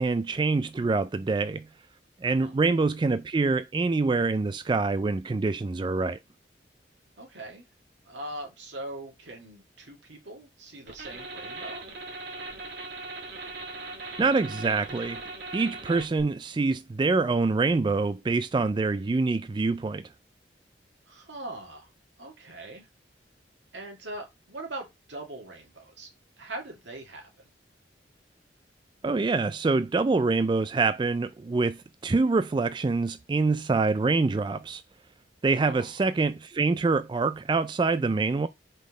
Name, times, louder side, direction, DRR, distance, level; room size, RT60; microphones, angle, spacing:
voice 1, 0.0-1.7 2.2-6.2 14.2-15.2 15.5-20.1 29.0-34.8 35.4-38.5, right 3 dB, 25° right, 0.3 m, -25 dB
voice 2, 2.2-2.6 7.2-7.6 8.0-11.8 21.1-21.9 22.2-22.9 23.7-26.1 26.4-27.5 35.7-35.9, right 1 dB, 80° right, 2.4 m, -41 dB
sound 1, 10.9-16.2, right 3 dB, 65° right, 2.4 m, -39 dB
5.3 x 4.0 x 5.0 m
head